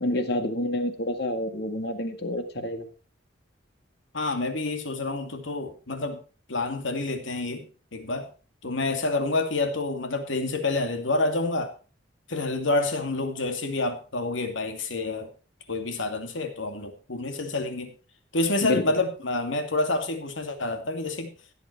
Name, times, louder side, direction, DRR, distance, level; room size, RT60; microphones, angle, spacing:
voice 1, 0.0-2.8 18.6-18.8, left 1 dB, 55° left, 7 dB, 2.0 m, -28 dB
voice 2, 4.1-6.2 6.5-7.7 7.9-8.3 8.6-11.7 12.3-15.3 15.7-17.9 18.3-21.3, left 2 dB, 80° left, 6 dB, 2.5 m, -28 dB
16.0 x 8.2 x 4.6 m, 0.36 s
head